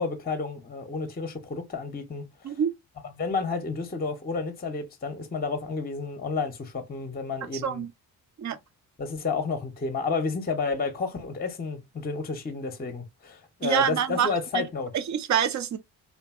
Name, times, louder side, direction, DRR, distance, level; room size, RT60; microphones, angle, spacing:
voice 1, 0.0-2.5 3.2-7.8 9.0-14.9, left 4 dB, 20° left, 0.7 m, -31 dB
voice 2, 7.5-7.9 8.4-8.6 13.6-14.7 14.9-15.8, right 8 dB, 40° right, 0.6 m, -26 dB
2.5 x 2.5 x 2.4 m
supercardioid pair, 50°, 44 cm